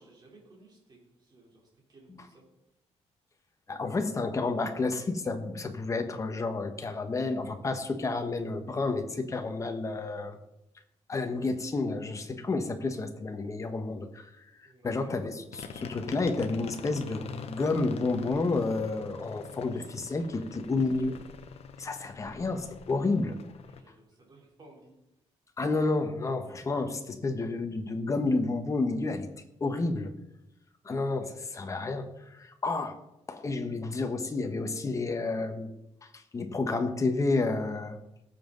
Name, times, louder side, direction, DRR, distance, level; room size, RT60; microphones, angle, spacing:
voice 1, 0.0-2.4 14.6-15.2 23.7-24.9, right 2 dB, 35° right, -2 dB, 3.6 m, -57 dB
voice 2, 3.7-10.4 11.1-21.2 21.8-23.4 25.6-29.3 29.6-30.1 30.8-33.0 33.3-35.7 36.0-38.0, left 3 dB, 25° left, 6 dB, 1.2 m, -30 dB
sound 1, 15.5-23.8, left 6 dB, 60° left, 1.0 m, -44 dB
18.0 x 7.4 x 4.0 m, 0.89 s
cardioid pair, 135°, 12 cm